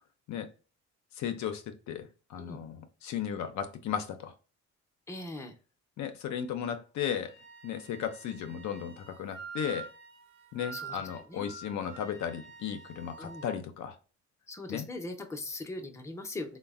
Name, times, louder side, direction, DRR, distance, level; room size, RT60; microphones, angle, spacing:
voice 1, 1.2-4.3 6.0-7.3 7.6-9.9 10.5-14.0 14.7-14.9, left 8 dB, 70° left, 0.5 m, -35 dB
voice 2, 5.1-5.6 10.7-11.5 13.2-13.5 14.5-16.6, left 2 dB, 10° left, 0.5 m, -40 dB
Wind instrument woodwind instrument, 7.2-13.6, right 5 dB, 60° right, 0.9 m, -47 dB
3.1 x 2.1 x 2.3 m
cardioid pair, 90°, 30 cm